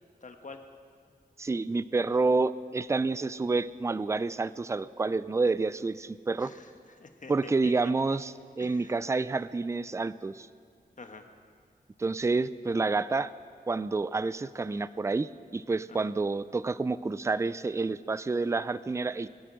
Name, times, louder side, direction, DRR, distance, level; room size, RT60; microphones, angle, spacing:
voice 1, 0.2-0.6 6.4-7.9 8.6-9.0 11.0-11.3 15.9-16.1, left 4 dB, 50° left, 6 dB, 1.3 m, -48 dB
voice 2, 1.4-6.5 7.3-10.5 12.0-13.3 13.7-19.3, right 3 dB, 20° right, 16 dB, 0.3 m, -29 dB
21.0 x 8.9 x 6.3 m, 2.1 s
wide cardioid pair, 100°, 16 cm